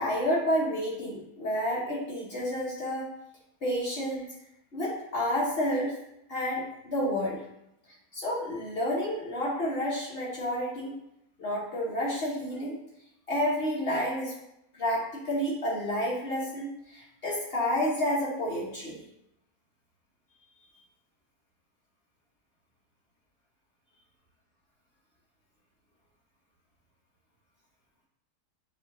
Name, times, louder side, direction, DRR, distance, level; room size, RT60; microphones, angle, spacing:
voice 1, 0.0-3.1 3.6-4.3 4.7-5.9 6.3-7.4 8.1-10.9 11.4-12.8 13.3-14.3 14.7-19.0, equal, 40° left, -6 dB, 1.1 m, -30 dB
6.0 x 2.4 x 3.0 m, 0.80 s
omnidirectional pair, 1.7 m